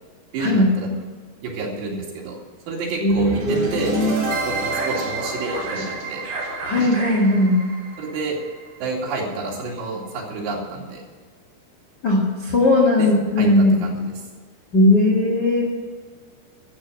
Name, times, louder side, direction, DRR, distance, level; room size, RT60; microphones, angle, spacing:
voice 1, 0.3-0.9 1.4-2.4 2.7-4.0 4.4-6.2 8.0-8.4 8.8-11.0 13.0-13.1 13.4-14.1, right 3 dB, 80° right, -2 dB, 4.7 m, -29 dB
voice 2, 3.0-4.2 6.6-7.6 12.0-13.7 14.7-15.7, left 1 dB, 60° left, -2 dB, 1.0 m, -18 dB
sound 1, 3.1-9.2, right 2 dB, 65° right, 5.3 m, -29 dB
13.0 x 7.8 x 7.9 m, 1.5 s
omnidirectional pair, 5.0 m